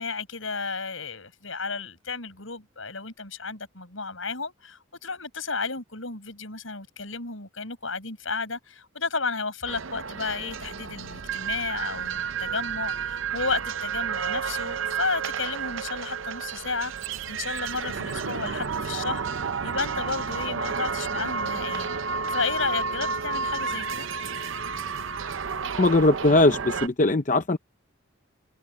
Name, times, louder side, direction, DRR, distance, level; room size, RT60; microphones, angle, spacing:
voice 1, 0.0-19.2 19.6-24.1, left 4 dB, 75° left, 6.6 m, -33 dB
sound 1, 9.7-26.9, right 6 dB, 70° right, 0.7 m, -31 dB
voice 2, 25.8-27.6, left 2 dB, 35° left, 0.7 m, -20 dB
head